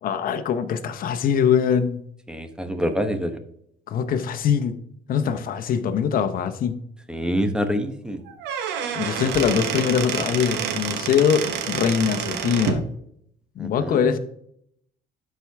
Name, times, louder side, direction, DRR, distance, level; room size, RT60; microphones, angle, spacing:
voice 1, 0.0-2.0 3.9-4.8 5.1-6.8 8.9-12.9 13.6-14.2, left 7 dB, 60° left, 10 dB, 0.9 m, -22 dB
voice 2, 2.3-3.4 7.1-8.2 13.6-14.1, equal, 5° right, 8 dB, 1.0 m, -26 dB
Squeak / Wood, 8.3-12.8, right 8 dB, 85° right, 1.0 m, -28 dB
12.0 x 4.6 x 3.5 m, 0.70 s
cardioid pair, 110°, 17 cm